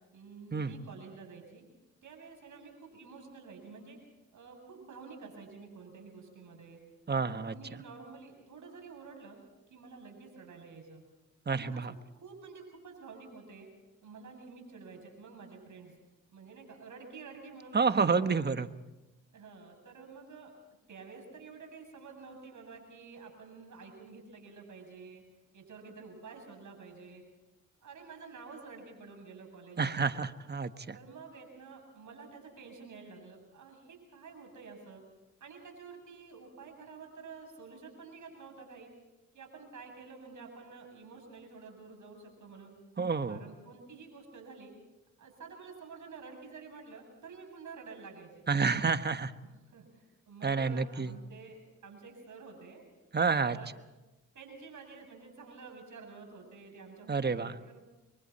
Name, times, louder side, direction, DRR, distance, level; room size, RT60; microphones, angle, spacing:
voice 1, 0.1-1.6 2.0-4.0 4.3-6.8 7.1-9.4 9.7-11.0 11.5-11.8 12.1-13.7 14.0-15.9 16.3-18.4 19.3-20.5 20.9-25.2 25.5-27.2 27.8-30.1 30.9-35.0 35.4-38.9 39.3-42.7 43.3-44.7 45.2-48.5 49.2-52.8 53.4-53.7 54.3-57.8, right 4 dB, 65° right, 3 dB, 8.0 m, -50 dB
voice 2, 7.1-7.5 11.5-11.9 17.7-18.7 29.8-30.9 43.0-43.4 48.5-49.3 50.4-51.1 53.1-53.6 57.1-57.5, right 5 dB, 30° right, 10 dB, 1.3 m, -29 dB
30.0 x 23.0 x 4.3 m, 1.0 s
supercardioid pair, 60°, 32 cm